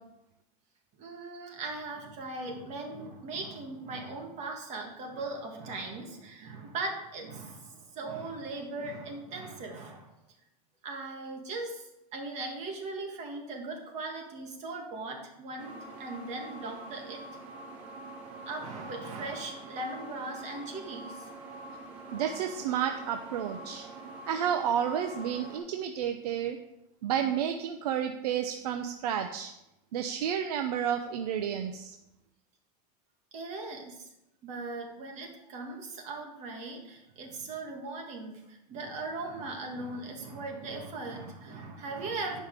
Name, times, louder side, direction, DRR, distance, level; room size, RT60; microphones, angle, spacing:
voice 1, 1.0-10.1 10.8-17.2 18.2-21.3 33.3-34.1 34.4-42.4, right 3 dB, 35° right, 1 dB, 2.0 m, -39 dB
sound 1, 15.6-25.6, right 2 dB, 55° right, 2.7 m, -45 dB
voice 2, 22.1-23.9 24.3-26.6 27.0-29.5 29.9-32.0, right 9 dB, 85° right, 6 dB, 0.8 m, -31 dB
10.5 x 5.5 x 4.9 m, 0.89 s
supercardioid pair, 150°, 20 cm